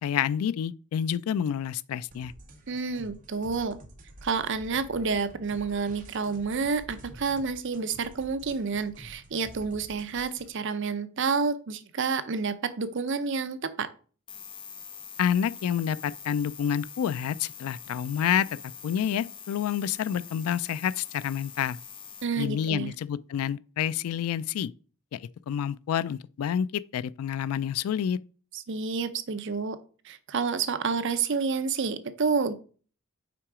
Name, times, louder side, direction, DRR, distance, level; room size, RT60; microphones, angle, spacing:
voice 1, 0.0-2.3 15.2-18.5 18.8-21.8 22.4-24.7 25.1-28.2, left 9 dB, 75° left, 0.3 m, -28 dB
sound 1, 2.1-10.5, right 1 dB, 35° right, 1.2 m, -49 dB
voice 2, 2.7-3.8 4.2-13.9 22.2-22.9 28.5-29.8 30.0-32.5, right 5 dB, 55° right, 0.6 m, -29 dB
sound 2, 14.3-22.3, left 7 dB, 25° left, 0.7 m, -44 dB
5.9 x 4.7 x 4.8 m
head